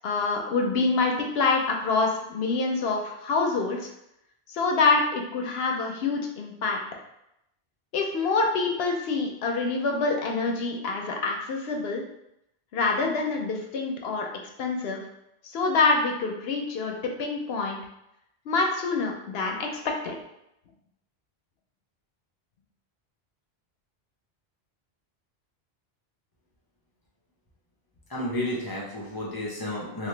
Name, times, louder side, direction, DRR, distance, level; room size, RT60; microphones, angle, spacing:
voice 1, 0.0-3.9 4.5-6.8 7.9-12.0 12.7-14.3 14.6-15.0 15.4-17.8 18.5-20.1, left 3 dB, 75° left, 1 dB, 0.9 m, -26 dB
voice 2, 28.1-30.1, left 1 dB, 25° left, -4 dB, 0.7 m, -31 dB
2.9 x 2.9 x 3.2 m, 0.81 s
omnidirectional pair, 1.1 m